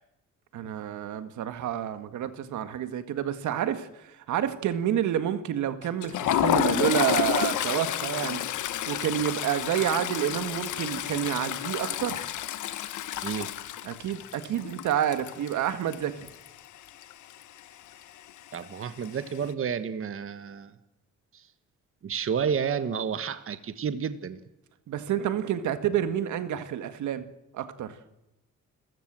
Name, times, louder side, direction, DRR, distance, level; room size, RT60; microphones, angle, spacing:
voice 1, 0.5-8.4 8.9-12.3 13.8-16.1 24.9-27.3 27.5-27.9, right 10 dB, 75° right, 10 dB, 1.8 m, -29 dB
Toilet flush, 5.8-16.6 16.9-17.1 17.4-17.6 18.5-19.1, left 11 dB, 80° left, 1.4 m, -30 dB
voice 2, 18.5-20.7 21.3-21.5 22.0-24.4, right 7 dB, 45° right, 11 dB, 1.4 m, -31 dB
29.5 x 15.0 x 7.7 m, 0.92 s
cardioid pair, 90°, 30 cm